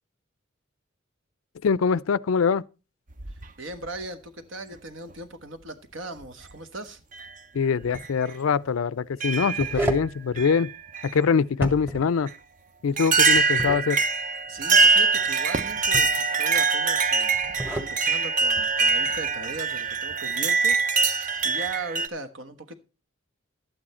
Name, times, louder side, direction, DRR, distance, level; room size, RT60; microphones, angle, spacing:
voice 1, 1.6-2.6 7.5-10.7 11.0-12.3 12.8-14.0, left 6 dB, 85° left, 0.4 m, -23 dB
sound 1, 3.1-4.0 5.1-5.2 6.2-6.5 7.1-7.3 7.9-8.1 9.2-9.9 10.4-11.1 12.3-12.4 13.0-22.1, right 4 dB, 40° right, 0.6 m, -23 dB
voice 2, 3.3-7.0 12.9-13.0 14.5-17.4 17.7-20.8 21.1-22.8, right 2 dB, 70° right, 1.3 m, -38 dB
sound 2, 7.8-8.1 9.3-10.1 11.5-12.1 13.3-13.9 15.6-16.2 17.3-17.9, right 1 dB, 10° right, 1.2 m, -31 dB
11.5 x 8.8 x 4.3 m
head